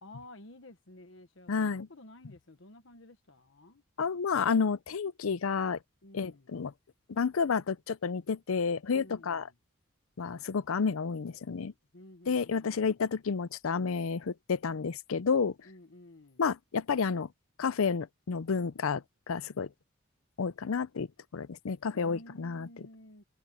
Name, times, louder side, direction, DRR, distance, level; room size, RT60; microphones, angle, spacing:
voice 1, 0.0-3.8 6.0-6.5 8.9-9.6 11.9-12.9 15.6-16.5 21.9-23.2, left 1 dB, 60° left, 1.2 m, -52 dB
voice 2, 1.5-1.9 4.0-5.8 6.1-6.7 7.1-9.5 10.2-11.7 12.3-15.5 16.4-17.3 17.6-19.7 20.4-21.1 21.3-22.7, left 5 dB, 75° left, 0.5 m, -30 dB
head